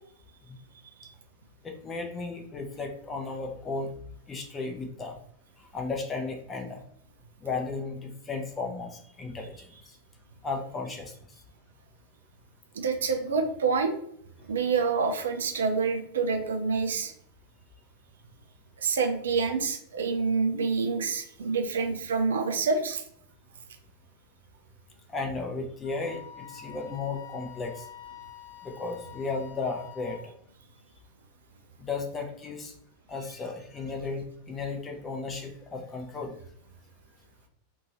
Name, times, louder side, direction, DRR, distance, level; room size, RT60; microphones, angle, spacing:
voice 1, 1.6-3.9 4.3-5.2 5.7-6.8 7.4-9.7 10.4-11.1 25.1-26.2 26.5-27.9 28.6-30.2 31.8-32.7 33.1-36.3, left 3 dB, 20° left, 2 dB, 0.6 m, -34 dB
voice 2, 12.8-14.0 14.5-17.1 18.8-23.0, right 5 dB, 65° right, 5 dB, 0.4 m, -27 dB
Wind instrument woodwind instrument, 25.8-30.3, left 10 dB, 65° left, 0.7 m, -47 dB
2.7 x 2.7 x 2.8 m, 0.68 s
figure-of-eight pair, 90°, 0 cm